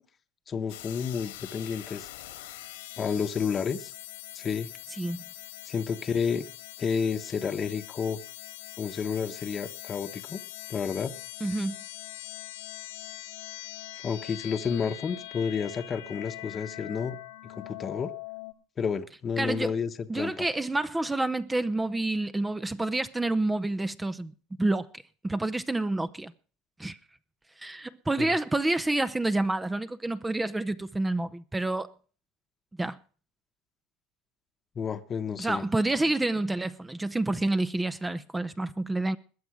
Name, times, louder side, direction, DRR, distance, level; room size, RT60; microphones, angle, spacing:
voice 1, 0.5-2.1 3.0-3.9 4.3-4.7 5.6-6.5 6.8-8.2 8.8-10.4 10.7-11.1 14.0-17.2 17.5-18.1 18.8-20.5 28.2-28.3 34.8-35.6, left 6 dB, 30° left, 1.1 m, -30 dB
sound 1, 0.7-18.5, left 16 dB, 90° left, 2.1 m, -43 dB
voice 2, 4.9-5.2 11.4-11.8 19.4-19.8 20.1-24.3 24.6-26.3 26.8-27.0 27.6-31.9 32.8-33.0 35.4-39.2, right 2 dB, 10° right, 0.7 m, -28 dB
21.0 x 7.2 x 4.9 m
supercardioid pair, 110°, 0 cm